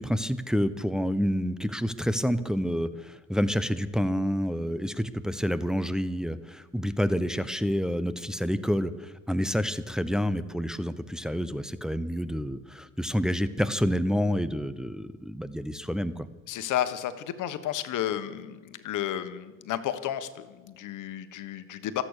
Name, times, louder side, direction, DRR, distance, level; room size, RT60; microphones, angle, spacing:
voice 1, 0.0-16.3, equal, ahead, 11 dB, 0.9 m, -28 dB
voice 2, 16.5-22.0, left 11 dB, 85° left, 11 dB, 1.3 m, -32 dB
25.5 x 8.6 x 6.6 m, 1.3 s
cardioid pair, 90°, 30 cm